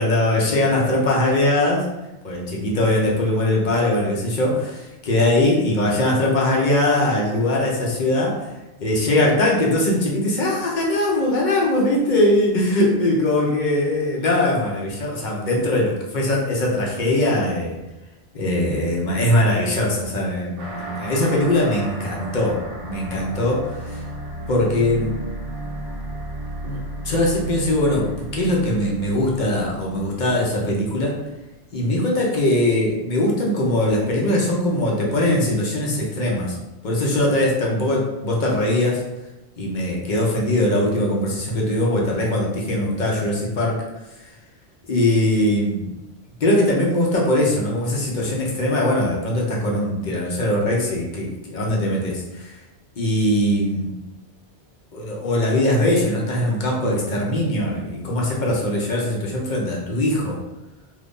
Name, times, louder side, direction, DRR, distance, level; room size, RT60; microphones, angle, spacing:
voice 1, 0.0-1.9 2.2-8.5 8.8-15.9 16.1-17.8 18.3-24.0 24.5-25.1 26.6-26.8 27.0-31.2 31.7-36.5 36.8-39.0 39.6-43.8 44.9-45.9 46.4-52.6 53.0-53.9 54.9-60.4, left 1 dB, 50° left, -3 dB, 0.8 m, -21 dB
sound 1, 20.6-31.6, right 1 dB, 60° right, 0.9 m, -34 dB
2.8 x 2.5 x 3.6 m, 1.0 s
omnidirectional pair, 1.1 m